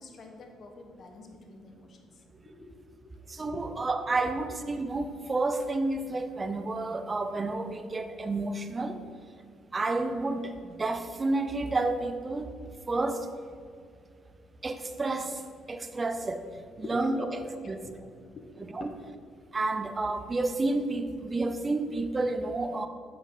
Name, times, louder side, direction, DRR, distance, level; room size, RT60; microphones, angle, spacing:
voice 1, 0.0-2.1 2.4-2.8 3.4-3.9 16.8-19.1, left 3 dB, 50° left, 3 dB, 1.2 m, -45 dB
voice 2, 3.3-9.0 9.7-12.5 12.9-13.3 14.6-15.4 15.7-16.4 16.8-17.8 18.6-18.9 19.5-22.9, right 2 dB, 25° right, 9 dB, 0.6 m, -30 dB
7.5 x 5.6 x 5.5 m, 2.2 s
cardioid pair, 105°, 0 cm